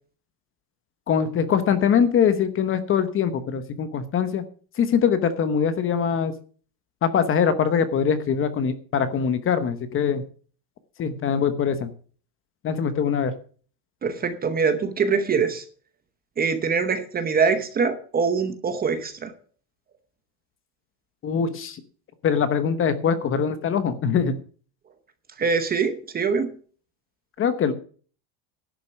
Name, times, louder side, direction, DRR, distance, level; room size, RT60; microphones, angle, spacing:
voice 1, 1.1-4.4 4.8-6.3 7.0-10.2 11.0-11.9 12.6-13.3 21.2-21.8 22.2-24.3 27.4-27.7, left 7 dB, 25° left, 11 dB, 1.0 m, -22 dB
voice 2, 14.0-15.6 16.4-19.3 25.4-26.6, right 5 dB, 20° right, 9 dB, 0.9 m, -23 dB
11.5 x 6.7 x 8.0 m, 0.43 s
cardioid pair, 155°, 47 cm